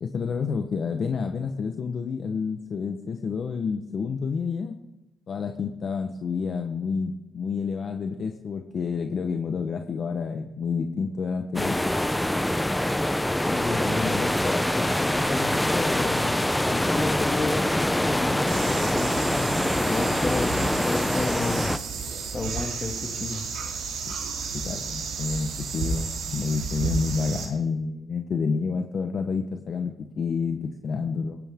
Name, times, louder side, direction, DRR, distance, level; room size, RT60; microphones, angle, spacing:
voice 1, 0.0-4.8 5.3-11.8 24.5-31.4, left 5 dB, 50° left, 5 dB, 1.0 m, -29 dB
sound 1, 11.6-21.8, left 1 dB, 5° left, 0.6 m, -25 dB
voice 2, 13.5-19.5 19.8-21.7 22.3-23.4, left 3 dB, 30° left, 4 dB, 2.2 m, -31 dB
sound 2, 18.5-27.5, right 5 dB, 85° right, 4.2 m, -32 dB
19.0 x 16.5 x 3.7 m, 0.95 s
cardioid pair, 90°, 0 cm